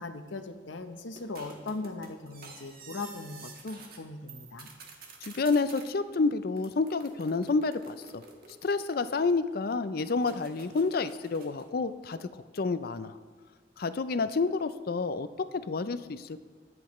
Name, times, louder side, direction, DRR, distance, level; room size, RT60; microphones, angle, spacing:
voice 1, 0.0-4.7, left 3 dB, 80° left, 8 dB, 0.8 m, -39 dB
sound 1, 1.2-4.0 4.3-5.9 6.6-9.5 10.2-11.7, right 4 dB, 50° right, 1.5 m, -50 dB
voice 2, 5.2-8.2 8.6-12.3 12.5-13.1 13.8-16.4, left 4 dB, 50° left, 12 dB, 0.5 m, -29 dB
21.5 x 7.9 x 3.1 m, 1.5 s
head